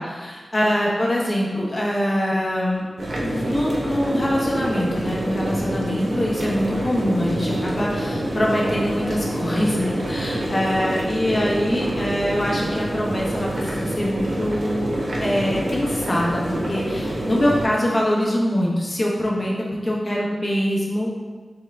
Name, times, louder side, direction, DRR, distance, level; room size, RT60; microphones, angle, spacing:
voice 1, 0.2-2.9 3.2-14.9 15.2-19.5 19.8-21.3, equal, 40° left, -3 dB, 1.0 m, -23 dB
sound 1, 3.0-17.7, right 1 dB, 70° right, 0.8 m, -27 dB
3.6 x 3.5 x 3.4 m, 1.4 s
cardioid pair, 55°, 0 cm